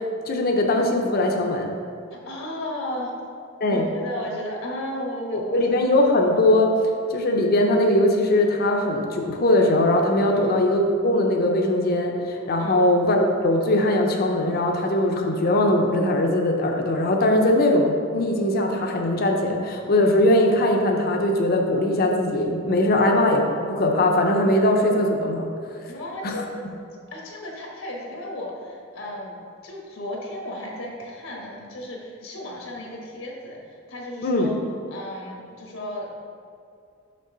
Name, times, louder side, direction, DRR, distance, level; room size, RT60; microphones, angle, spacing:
voice 1, 0.3-1.7 3.6-3.8 5.3-6.7 7.1-25.5 25.8-25.9 26.2-26.4 34.2-34.5, left 1 dB, 45° left, 2 dB, 0.6 m, -20 dB
voice 2, 2.1-3.1 3.7-5.6 10.3-10.5 12.6-12.8 25.9-26.7 27.1-29.4 29.6-34.6 34.9-36.1, left 1 dB, 80° left, -2 dB, 1.2 m, -34 dB
6.2 x 5.3 x 3.8 m, 2.5 s
head